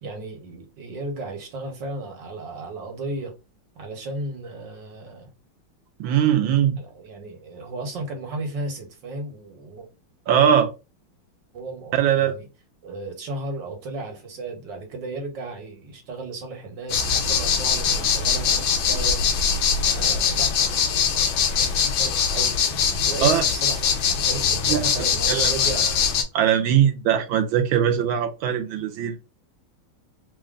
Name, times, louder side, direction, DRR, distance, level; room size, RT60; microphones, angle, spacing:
voice 1, 0.0-3.3 3.8-5.3 6.8-9.9 11.5-12.5 12.8-19.2 19.8-22.5 23.0-25.9, right 2 dB, 65° right, 1.8 m, -34 dB
voice 2, 6.0-6.8 10.3-10.7 12.0-12.3 23.2-23.4 24.7-24.9 25.3-25.9 26.3-29.1, right 9 dB, 80° right, 1.4 m, -21 dB
sound 1, 16.9-26.2, left 6 dB, 75° left, 1.5 m, -22 dB
3.9 x 2.1 x 3.6 m
omnidirectional pair, 2.2 m